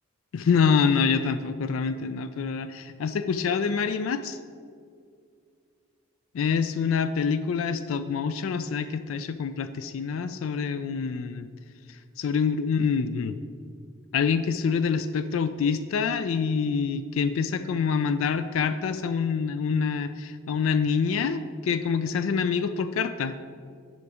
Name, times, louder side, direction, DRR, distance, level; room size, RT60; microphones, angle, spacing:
voice 1, 0.3-4.4 6.3-11.5 11.9-13.4 14.1-23.4, left 6 dB, 85° left, 11 dB, 0.3 m, -26 dB
9.4 x 5.2 x 4.8 m, 2.2 s
head